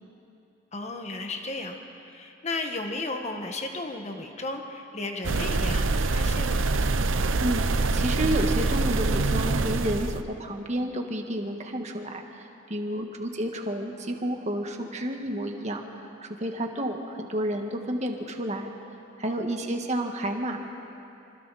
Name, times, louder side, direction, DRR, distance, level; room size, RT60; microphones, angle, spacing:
voice 1, 0.7-1.8 2.1-6.6 12.9-13.0 19.3-19.5, left 2 dB, 35° left, 4 dB, 1.7 m, -34 dB
sound 1, 5.2-10.2, right 3 dB, 80° right, 0.8 m, -25 dB
voice 2, 7.9-10.1 10.4-12.2 12.7-15.8 16.2-18.7 19.2-20.6, right 1 dB, 35° right, 3 dB, 1.8 m, -30 dB
26.0 x 25.5 x 4.3 m, 2.8 s
head